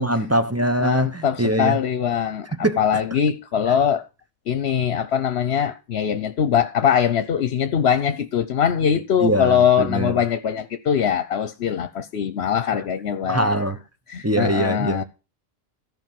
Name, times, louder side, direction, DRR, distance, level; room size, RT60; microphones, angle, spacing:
voice 1, 0.0-1.8 2.5-2.8 9.2-10.2 13.3-13.8 14.2-15.0, right 1 dB, 15° right, 1.0 m, -22 dB
voice 2, 0.8-4.1 4.5-13.6 14.1-15.0, left 8 dB, 75° left, 1.0 m, -22 dB
14.0 x 5.4 x 7.5 m
omnidirectional pair, 1.1 m